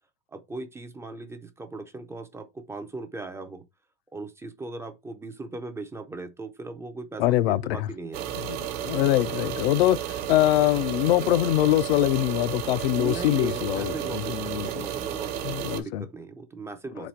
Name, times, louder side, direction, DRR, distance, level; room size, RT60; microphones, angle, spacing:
voice 1, 0.3-3.7 4.1-8.3 12.9-17.1, right 3 dB, 10° right, 0.3 m, -38 dB
voice 2, 7.2-7.9 8.5-14.8 15.4-16.0, left 15 dB, 75° left, 0.5 m, -24 dB
sound 1, 8.1-15.8, right 10 dB, 65° right, 1.1 m, -32 dB
4.2 x 2.8 x 4.4 m
supercardioid pair, 125°, 31 cm